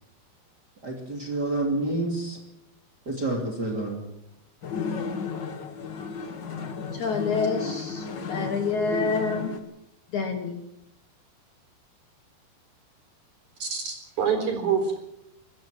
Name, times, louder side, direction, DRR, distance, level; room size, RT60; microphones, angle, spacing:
voice 1, 0.8-2.4 3.1-4.0, right 2 dB, 30° right, 0 dB, 2.8 m, -28 dB
sound 1, 4.6-9.6, left 5 dB, 80° left, 1.0 m, -33 dB
voice 2, 7.0-8.0 8.3-9.5 10.1-10.6, left 4 dB, 60° left, 5 dB, 2.4 m, -27 dB
voice 3, 13.6-15.0, right 6 dB, 45° right, 5 dB, 5.3 m, -26 dB
23.5 x 15.0 x 7.6 m, 0.87 s
omnidirectional pair, 4.7 m